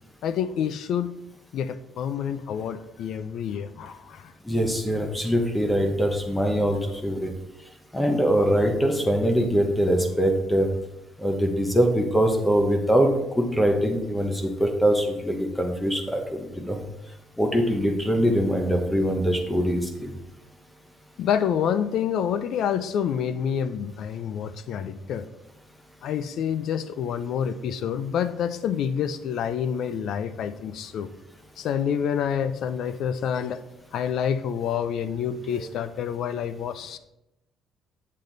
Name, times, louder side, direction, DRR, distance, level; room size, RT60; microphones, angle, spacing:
voice 1, 0.2-1.1 1.5-4.3 21.2-25.3 26.0-31.1 31.6-33.6 33.9-37.0, left 8 dB, 55° left, 13 dB, 0.5 m, -28 dB
voice 2, 4.4-7.3 7.9-10.7 11.2-16.8 17.4-20.2 35.5-35.6, equal, 5° left, 4 dB, 0.9 m, -23 dB
7.5 x 6.6 x 3.9 m, 0.90 s
cardioid pair, 160°, 0 cm